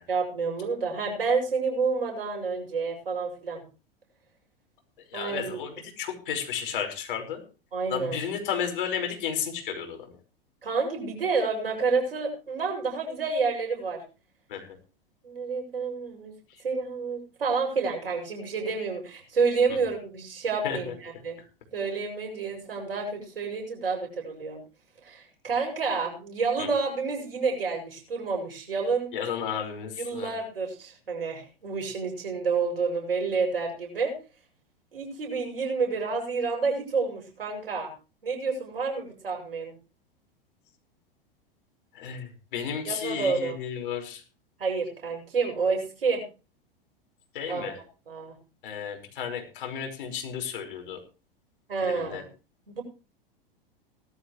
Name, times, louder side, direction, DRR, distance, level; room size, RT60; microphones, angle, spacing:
voice 1, 0.1-3.6 5.1-5.6 7.7-8.2 10.6-14.0 15.2-16.3 16.6-21.4 21.7-24.6 25.0-29.1 30.0-34.1 34.9-37.9 38.2-39.7 42.9-43.6 44.6-46.2 47.5-48.4 51.7-52.3 52.7-52.8, right 4 dB, 75° right, 1 dB, 7.3 m, -29 dB
voice 2, 5.1-7.4 7.9-10.1 14.5-14.8 16.5-16.6 19.7-19.8 20.6-20.9 21.4-21.5 26.6-26.7 29.1-30.3 41.9-44.2 47.3-47.8 48.6-51.0 51.8-52.2, left 8 dB, 60° left, 4 dB, 5.3 m, -33 dB
19.0 x 12.5 x 3.3 m, 0.34 s
figure-of-eight pair, 95°, 29 cm